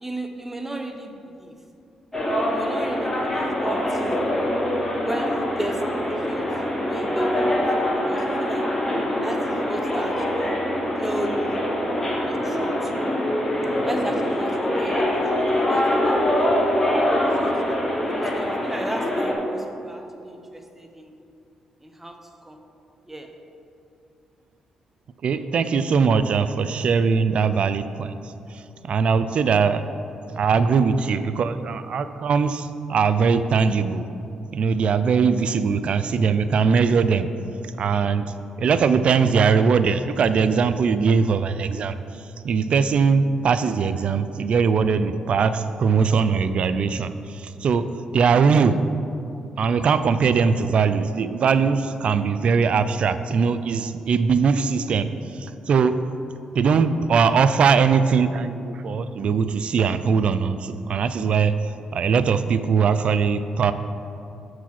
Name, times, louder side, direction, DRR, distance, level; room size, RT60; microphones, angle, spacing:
voice 1, 0.0-1.5 2.5-4.3 5.0-6.5 6.9-8.8 9.2-10.5 11.0-11.6 12.3-12.9 13.8-16.5 17.2-21.1 21.8-22.2 22.4-22.6 23.1-23.3, right 1 dB, 10° right, 5 dB, 0.8 m, -34 dB
sound 1, 2.1-19.3, left 1 dB, 20° left, 1.4 m, -24 dB
voice 2, 25.2-28.1 28.9-29.8 30.4-34.1 34.5-37.3 37.8-38.3 38.6-42.0 42.4-47.9 48.1-48.8 49.6-55.1 55.4-56.0 56.5-61.5 61.9-63.7, right 5 dB, 60° right, 12 dB, 0.4 m, -20 dB
6.9 x 4.7 x 5.9 m, 2.7 s
cardioid pair, 70°, 2 cm